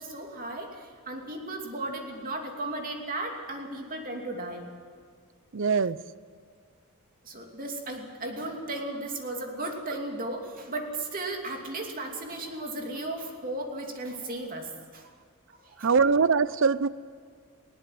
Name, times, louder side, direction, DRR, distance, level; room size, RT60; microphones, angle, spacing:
voice 1, 0.0-4.7 7.2-15.1 15.6-15.9, right 2 dB, 40° right, 2 dB, 2.8 m, -35 dB
voice 2, 5.5-6.0 15.8-16.9, right 5 dB, 60° right, 17 dB, 0.6 m, -22 dB
20.0 x 17.5 x 7.8 m, 2.1 s
head